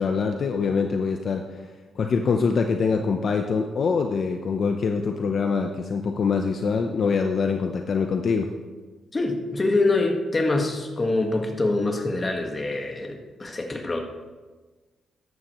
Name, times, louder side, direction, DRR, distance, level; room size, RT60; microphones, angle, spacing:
voice 1, 0.0-1.4 2.0-8.5, left 5 dB, 55° left, 4 dB, 0.8 m, -24 dB
voice 2, 9.1-14.0, left 2 dB, 25° left, 2 dB, 1.6 m, -25 dB
14.5 x 11.0 x 3.1 m, 1.3 s
cardioid pair, 110°, 0 cm